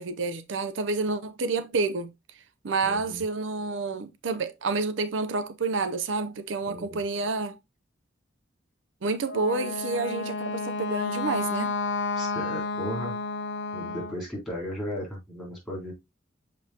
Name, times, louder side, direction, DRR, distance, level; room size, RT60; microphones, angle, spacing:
voice 1, 0.0-2.1 2.6-7.6 9.0-11.7, right 3 dB, 85° right, 0.6 m, -29 dB
voice 2, 2.8-3.2 6.7-7.0 12.2-13.1 13.7-15.9, equal, ahead, 3.8 m, -36 dB
Wind instrument woodwind instrument, 9.2-14.2, left 3 dB, 70° left, 0.8 m, -31 dB
6.6 x 5.2 x 2.8 m
head